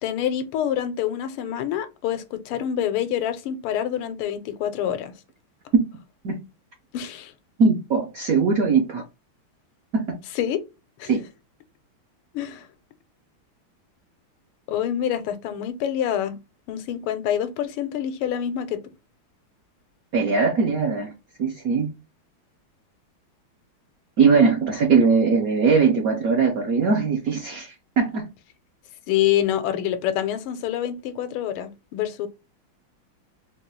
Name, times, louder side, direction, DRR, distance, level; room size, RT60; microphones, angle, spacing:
voice 1, 0.0-5.1 6.9-7.3 10.4-10.6 11.0-11.1 12.3-12.7 14.7-16.3 16.7-18.8 29.1-32.3, left 10 dB, 85° left, 1.5 m, -26 dB
voice 2, 7.6-9.0 9.9-10.2 11.1-11.2 20.1-21.1 21.4-21.9 24.2-28.3, right 5 dB, 75° right, 0.8 m, -20 dB
4.2 x 2.2 x 3.1 m
omnidirectional pair, 2.3 m